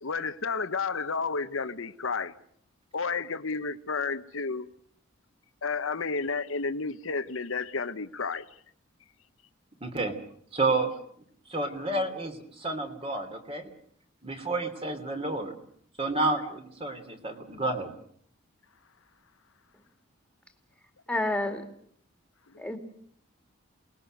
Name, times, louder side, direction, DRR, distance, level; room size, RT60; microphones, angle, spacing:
voice 1, 0.0-2.3 2.9-4.7 5.6-8.5, left 4 dB, 75° left, 11 dB, 1.1 m, -31 dB
voice 2, 9.8-10.1 10.5-10.9 11.5-13.7 14.2-15.5 16.0-17.9, right 2 dB, 25° right, 7 dB, 3.1 m, -30 dB
voice 3, 21.1-21.6 22.6-22.8, left 2 dB, 5° left, 6 dB, 2.6 m, -29 dB
28.5 x 20.0 x 6.6 m, 0.64 s
head